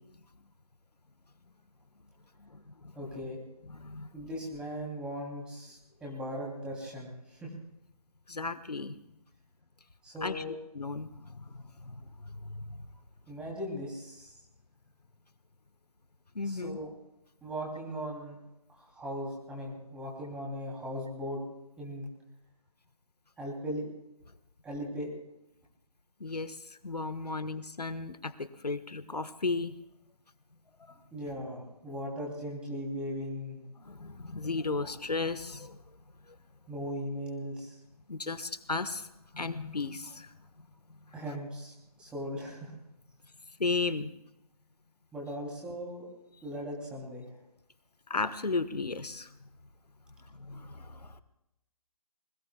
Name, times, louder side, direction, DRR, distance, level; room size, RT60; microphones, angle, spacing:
voice 1, 2.4-3.1 3.7-4.1 8.3-9.0 10.2-10.4 10.7-12.8 16.3-16.8 26.2-29.7 33.8-35.8 38.1-40.4 40.9-41.1 43.6-44.1 48.1-49.5 50.3-51.2, left 3 dB, 85° left, 12 dB, 1.2 m, -35 dB
voice 2, 2.9-3.4 4.1-7.5 10.0-10.5 13.3-14.3 16.4-16.9 17.4-18.4 18.7-21.4 21.8-22.1 23.4-23.9 24.6-25.1 31.1-33.6 36.7-37.8 41.1-42.7 45.1-46.1 46.4-47.3, equal, 5° right, -3 dB, 2.8 m, -38 dB
26.0 x 21.0 x 2.2 m, 0.87 s
figure-of-eight pair, 160°, 20 cm